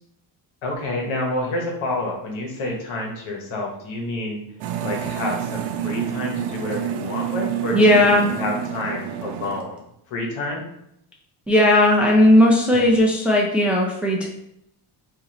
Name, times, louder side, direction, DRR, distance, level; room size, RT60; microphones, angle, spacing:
voice 1, 0.6-4.4 4.8-9.8 10.1-10.7 12.7-12.9, left 2 dB, 75° left, -1 dB, 1.2 m, -29 dB
sound 1, 4.6-9.6, right 10 dB, 85° right, 0.5 m, -28 dB
voice 2, 7.7-8.3 11.5-14.3, left 1 dB, 5° right, -2 dB, 0.4 m, -16 dB
3.0 x 2.7 x 3.9 m, 0.78 s
cardioid pair, 110°, 48 cm